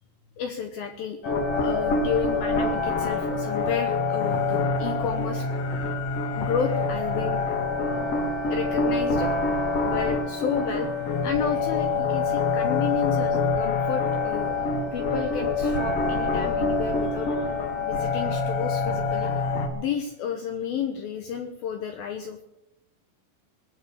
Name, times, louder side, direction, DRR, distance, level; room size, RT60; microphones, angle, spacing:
voice 1, 0.4-1.3 1.6-5.5 6.4-7.6 8.5-9.3 9.8-10.9 11.2-14.6 14.9-17.5 17.8-22.4, left 7 dB, 80° left, 6 dB, 2.2 m, -31 dB
sound 1, 1.2-19.7, left 3 dB, 60° left, 1.6 m, -26 dB
20.5 x 8.0 x 6.8 m, 0.90 s
omnidirectional pair, 5.5 m